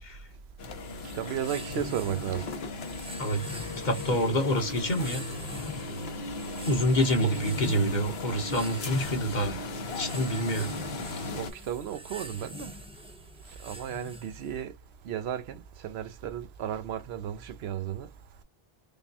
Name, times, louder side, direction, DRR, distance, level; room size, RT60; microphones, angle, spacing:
sound 1, 0.6-11.5, left 2 dB, 75° left, 1.1 m, -37 dB
sound 2, 0.8-14.6, left 1 dB, 5° right, 0.9 m, -43 dB
voice 1, 1.1-2.5 3.5-3.7 7.2-7.3 11.3-12.7 13.5-14.8 15.0-18.1, right 9 dB, 80° right, 0.9 m, -34 dB
voice 2, 3.8-5.2 6.6-9.6 10.0-10.7, equal, 45° left, 1.1 m, -27 dB
5.1 x 2.1 x 2.7 m
omnidirectional pair, 1.1 m